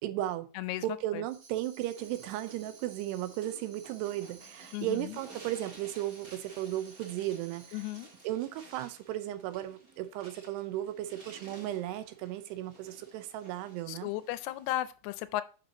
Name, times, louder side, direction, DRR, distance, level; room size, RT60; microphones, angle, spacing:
voice 1, 0.0-0.5 0.8-7.8 8.2-14.1, right 13 dB, 85° right, 2.8 m, -35 dB
Tambourine, 1.2-8.3, right 5 dB, 50° right, 1.9 m, -56 dB
sound 1, 1.8-14.8, right 2 dB, 70° right, 0.8 m, -55 dB
voice 2, 4.7-5.2 7.7-8.1 13.9-15.4, left 15 dB, 80° left, 2.5 m, -35 dB
8.6 x 5.8 x 2.8 m
omnidirectional pair, 4.8 m